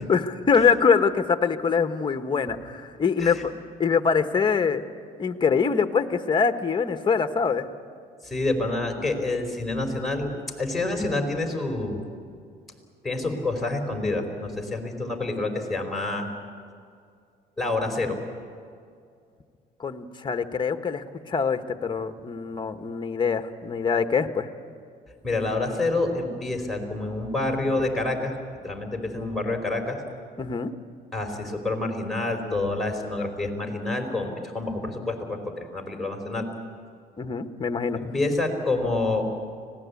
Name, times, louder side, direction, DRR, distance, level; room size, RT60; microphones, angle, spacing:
voice 1, 0.1-3.5 3.8-4.8 5.2-7.7 19.8-24.5 30.4-30.7 37.2-38.0, left 5 dB, 25° left, 8 dB, 1.3 m, -24 dB
voice 2, 8.2-10.3 10.6-12.0 13.0-16.3 17.6-18.2 25.2-28.3 28.6-30.0 31.1-36.5 37.9-39.3, left 2 dB, ahead, 2 dB, 4.7 m, -27 dB
25.0 x 18.5 x 8.5 m, 2.2 s
cardioid pair, 110°, 17 cm